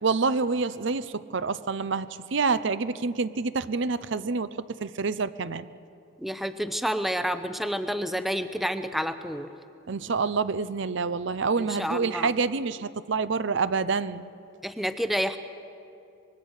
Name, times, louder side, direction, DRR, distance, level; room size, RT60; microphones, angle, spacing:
voice 1, 0.0-5.7 9.9-14.3, right 4 dB, 60° right, 14 dB, 0.6 m, -27 dB
voice 2, 6.2-9.5 11.8-12.3 14.6-15.4, equal, ahead, 10 dB, 0.7 m, -29 dB
25.5 x 21.0 x 6.5 m, 2.6 s
head